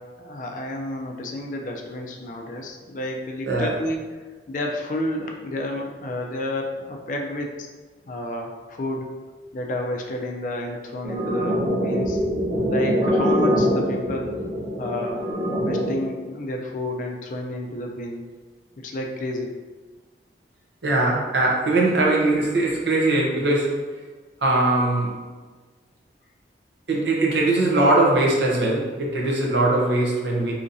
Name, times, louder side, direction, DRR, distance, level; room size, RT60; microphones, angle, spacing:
voice 1, 0.0-4.1 4.5-7.7 8.1-9.1 9.5-12.2 12.7-14.4 14.8-15.2 15.6-18.2 18.8-19.6, left 1 dB, 45° left, 1 dB, 0.4 m, -30 dB
sound 1, 11.0-16.0, equal, 20° right, 1.2 m, -23 dB
voice 2, 20.8-23.8 24.4-25.1 26.9-30.5, right 2 dB, 70° right, -3 dB, 0.7 m, -21 dB
3.9 x 2.8 x 2.6 m, 1.4 s
head